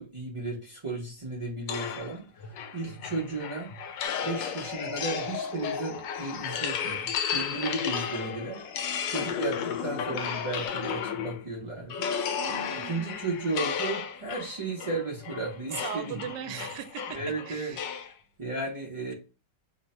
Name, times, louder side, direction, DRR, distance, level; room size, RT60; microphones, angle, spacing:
voice 1, 0.0-4.0 4.2-8.6 9.1-12.1 12.8-16.5 17.1-17.7 18.4-19.1, right 3 dB, 45° right, -6 dB, 0.4 m, -34 dB
sound 1, 1.7-11.5 11.9-18.1, left 7 dB, 90° left, 1.3 m, -34 dB
sound 2, 4.0-10.7, left 7 dB, 70° left, 0.7 m, -39 dB
voice 2, 12.4-13.2 15.7-18.0, right 10 dB, 75° right, 9 dB, 1.1 m, -39 dB
3.1 x 2.1 x 4.1 m, 0.32 s
omnidirectional pair, 1.9 m